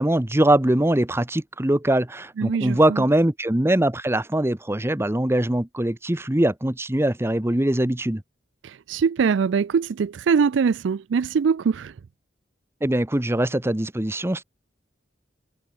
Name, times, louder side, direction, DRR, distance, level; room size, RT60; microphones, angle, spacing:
voice 1, 0.0-8.2 12.8-14.4, right 1 dB, 15° right, 0.9 m, -22 dB
voice 2, 2.4-3.0 8.6-11.9, right 6 dB, 80° right, 0.4 m, -22 dB
head